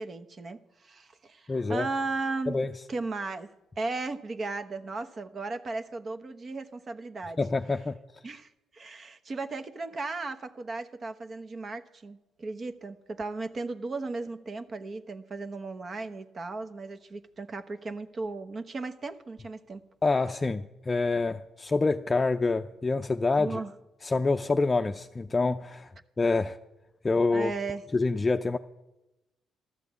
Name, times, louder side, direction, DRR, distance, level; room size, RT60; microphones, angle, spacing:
voice 1, 0.0-3.5 3.8-7.4 8.2-19.8 23.4-23.7 27.3-27.8, right 3 dB, 40° right, 1.0 m, -36 dB
voice 2, 1.5-1.9 2.5-2.7 7.4-7.9 20.0-23.6 24.0-25.9 26.2-26.6 27.0-27.5 27.9-28.6, left 3 dB, 25° left, 0.5 m, -26 dB
13.5 x 12.5 x 8.2 m
cardioid pair, 90°, 0 cm